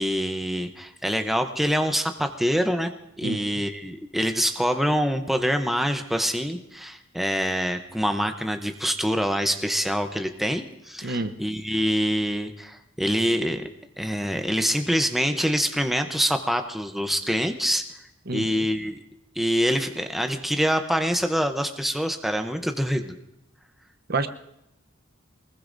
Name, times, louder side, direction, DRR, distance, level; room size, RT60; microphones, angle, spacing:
voice 1, 0.0-2.9 3.2-13.6 14.0-17.8 18.3-19.0 19.4-23.2, equal, ahead, 6 dB, 0.6 m, -25 dB
voice 2, 11.0-11.3 18.3-18.7 24.1-24.3, right 3 dB, 50° right, 9 dB, 0.8 m, -28 dB
23.5 x 20.5 x 2.6 m, 0.83 s
head